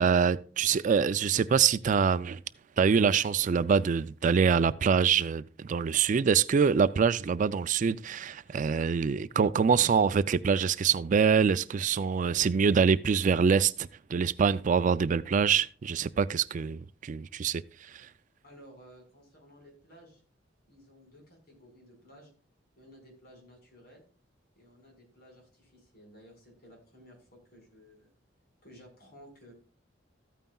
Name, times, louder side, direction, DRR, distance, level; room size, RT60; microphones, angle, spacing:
voice 1, 0.0-2.4 2.8-17.6 17.9-18.1, right 6 dB, 45° right, 0.3 m, -25 dB
voice 2, 18.4-20.2 20.7-22.3 22.8-24.0 24.5-28.1 28.6-29.5, equal, 55° left, 4.8 m, -55 dB
14.0 x 9.1 x 2.3 m
head